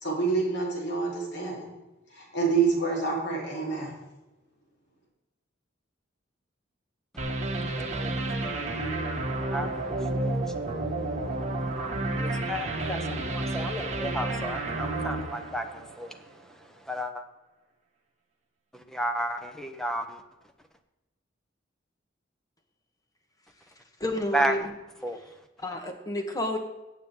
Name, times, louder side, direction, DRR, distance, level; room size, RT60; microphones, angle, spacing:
voice 1, 0.0-1.7 2.1-3.9, right 4 dB, 65° left, 4.1 m, -27 dB
sound 1, 7.2-16.2, right 2 dB, 40° right, 1.9 m, -31 dB
voice 2, 7.8-8.8 9.5-10.8 11.7-17.3 18.7-20.2 24.3-24.5 25.0-25.2, right 1 dB, 5° left, 1.0 m, -34 dB
voice 3, 24.0-24.7 25.6-26.6, left 1 dB, 20° left, 1.6 m, -30 dB
17.0 x 7.5 x 3.8 m
head